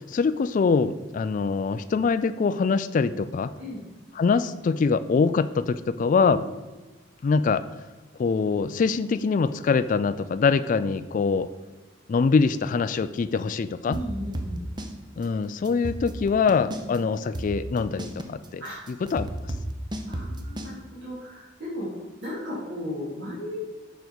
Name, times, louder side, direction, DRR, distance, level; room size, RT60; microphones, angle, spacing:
voice 1, 0.0-3.5 4.2-6.4 7.2-7.7 8.2-11.5 12.1-14.0 15.2-18.6 18.9-19.3, left 5 dB, 40° left, 12 dB, 0.3 m, -24 dB
sound 1, 13.9-14.9 15.2-15.3 15.7-17.0 17.3-20.7, right 1 dB, 25° right, 0.8 m, -32 dB
voice 2, 13.9-14.6 18.6-18.8 20.1-21.9 22.2-23.6, equal, 60° right, -10 dB, 2.8 m, -35 dB
7.0 x 5.1 x 6.1 m, 1.2 s
head